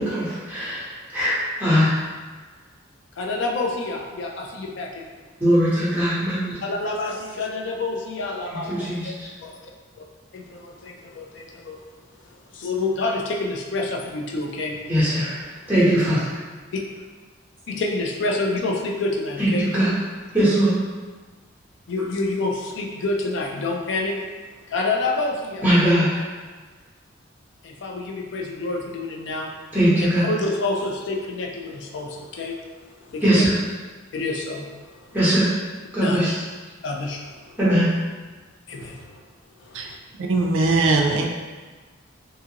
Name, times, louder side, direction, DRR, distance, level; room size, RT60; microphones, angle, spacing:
voice 1, 0.0-2.0 5.4-6.6 8.7-9.3 14.9-16.4 19.4-19.9 20.3-20.7 25.6-26.3 29.7-30.3 33.2-33.5 35.1-35.5 35.9-36.3 37.6-37.9, equal, 10° right, -11 dB, 0.9 m, -20 dB
voice 2, 3.2-5.1 6.6-9.1 9.4-9.6 10.3-11.8 12.3-14.8 16.7-16.8 17.7-19.7 21.9-24.3 24.7-25.6 27.6-29.5 30.2-32.7 33.0-33.5 34.1-35.1 36.0-36.2 36.8-37.6 38.7-39.2 39.6-40.0, left 2 dB, 60° left, 1 dB, 0.3 m, -28 dB
voice 3, 40.2-41.3, right 3 dB, 75° right, 2 dB, 0.3 m, -20 dB
2.7 x 2.5 x 2.8 m, 1.4 s
head